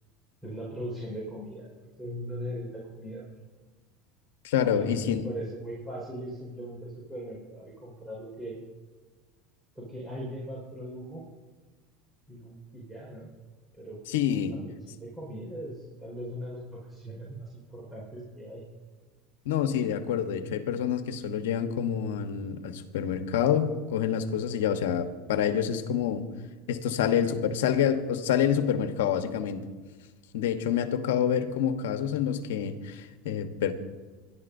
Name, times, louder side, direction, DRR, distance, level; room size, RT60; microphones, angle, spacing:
voice 1, 0.4-3.2 4.6-8.6 9.8-11.2 12.3-13.3 13.7-14.0 14.4-18.6, right 1 dB, 10° right, -5 dB, 4.7 m, -39 dB
voice 2, 4.4-5.2 14.1-14.6 19.4-26.2 26.7-29.6 30.3-33.7, left 8 dB, 85° left, 8 dB, 1.1 m, -27 dB
23.0 x 11.5 x 2.7 m, 1.4 s
supercardioid pair, 105°, 0 cm